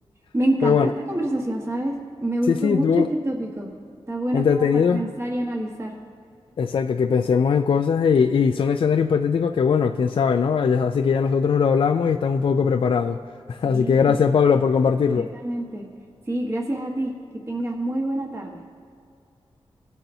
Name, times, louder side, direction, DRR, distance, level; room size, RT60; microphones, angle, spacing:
voice 1, 0.3-3.7 4.1-4.6 4.9-5.9 13.6-14.2 15.1-15.8 16.3-17.1 17.5-18.6, right 1 dB, 25° right, -1 dB, 1.3 m, -27 dB
voice 2, 2.5-3.1 4.3-5.0 6.6-13.2 13.5-15.3, left 6 dB, 60° left, 7 dB, 0.4 m, -20 dB
20.0 x 8.9 x 2.7 m, 2.3 s
wide cardioid pair, 130°, 10 cm